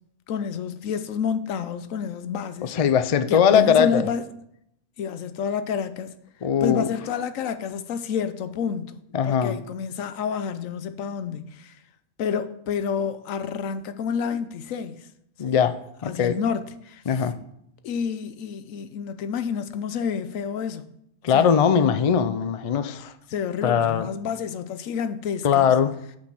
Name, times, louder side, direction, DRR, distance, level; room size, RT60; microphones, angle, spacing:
voice 1, 0.3-2.7 3.3-4.2 5.0-6.2 6.6-8.9 9.2-11.8 12.2-15.1 15.5-15.6 16.0-17.0 17.8-20.9 21.3-21.5 23.3-25.7, left 7 dB, 85° left, 1.1 m, -29 dB
voice 2, 2.6-4.1 6.4-6.9 9.1-9.6 15.4-16.4 17.1-17.4 21.2-23.1 23.6-24.1 25.4-25.9, left 7 dB, 60° left, 0.3 m, -20 dB
8.5 x 5.2 x 6.0 m
omnidirectional pair, 1.3 m